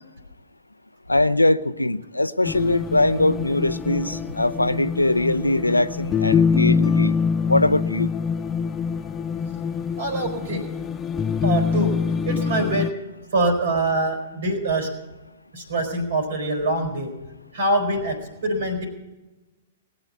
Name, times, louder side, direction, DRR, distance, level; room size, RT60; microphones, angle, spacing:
voice 1, 1.1-7.2 7.5-8.1, left 2 dB, 90° left, 0.5 m, -21 dB
sound 1, 2.4-12.9, left 6 dB, 20° left, 0.5 m, -24 dB
voice 2, 10.0-10.7 11.4-11.9 12.2-12.9 13.3-14.9 15.5-17.1 17.5-18.9, right 1 dB, 60° right, 4.0 m, -24 dB
19.5 x 8.0 x 8.4 m
figure-of-eight pair, 110°, 0 cm